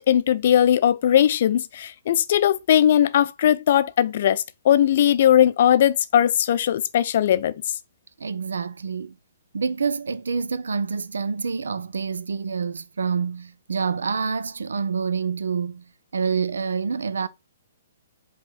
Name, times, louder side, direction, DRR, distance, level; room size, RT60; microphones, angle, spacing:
voice 1, 0.0-7.5, left 10 dB, 45° left, 0.5 m, -19 dB
voice 2, 8.2-9.2 9.5-17.3, right 5 dB, 65° right, 0.5 m, -27 dB
8.0 x 3.1 x 4.0 m
figure-of-eight pair, 120°, 0 cm